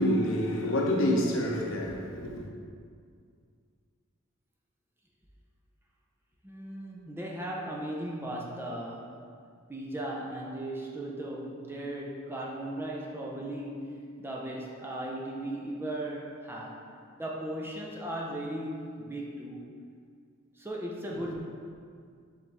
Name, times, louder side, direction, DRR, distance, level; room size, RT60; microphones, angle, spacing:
voice 1, 0.0-2.4, left 1 dB, 65° left, 0.9 m, -27 dB
voice 2, 6.4-9.2 9.7-16.8 17.2-19.6 20.6-21.4, right 1 dB, 10° right, 0.6 m, -37 dB
7.0 x 3.9 x 3.5 m
head